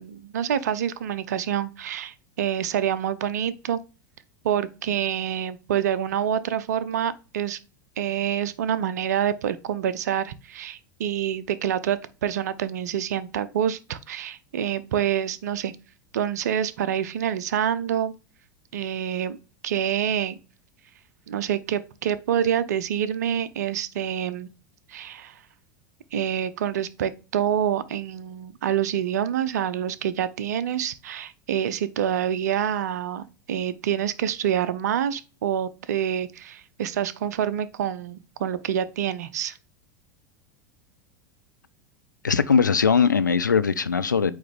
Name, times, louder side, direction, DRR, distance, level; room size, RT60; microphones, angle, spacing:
voice 1, 0.0-3.8 4.4-7.6 8.0-15.7 16.1-18.1 18.7-19.4 19.6-20.4 21.3-24.5 24.9-25.4 26.1-39.6, right 9 dB, 60° right, 0.6 m, -27 dB
voice 2, 42.2-44.3, left 6 dB, 80° left, 0.5 m, -20 dB
8.6 x 3.1 x 3.6 m
figure-of-eight pair, 80°, 10 cm